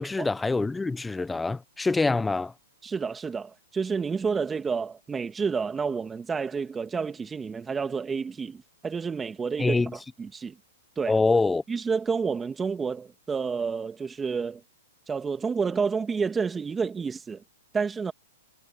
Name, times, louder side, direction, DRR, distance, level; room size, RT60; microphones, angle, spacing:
voice 1, 0.0-2.5 9.6-10.0 11.1-11.6, left 3 dB, 10° left, 1.0 m, -25 dB
voice 2, 2.8-10.6 11.0-11.2 11.7-14.6 15.1-17.4 17.7-18.1, right 5 dB, 15° right, 2.1 m, -29 dB
hypercardioid pair, 130°, 0 cm